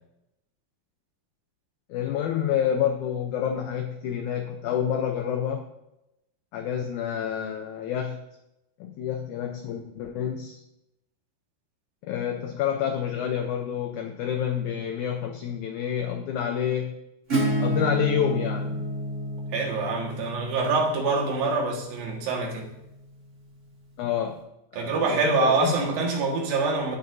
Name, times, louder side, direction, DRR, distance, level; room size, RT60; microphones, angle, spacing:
voice 1, 1.9-5.6 6.5-8.2 8.8-10.6 12.0-17.0 17.6-18.9 24.0-24.4 24.7-25.9, left 9 dB, 75° left, 3 dB, 1.9 m, -28 dB
Acoustic guitar / Strum, 17.3-22.8, right 1 dB, 25° right, 2.6 m, -30 dB
voice 2, 19.5-22.7 24.7-27.0, right 3 dB, 85° right, 0 dB, 3.4 m, -25 dB
16.5 x 6.6 x 2.7 m, 0.87 s
omnidirectional pair, 4.0 m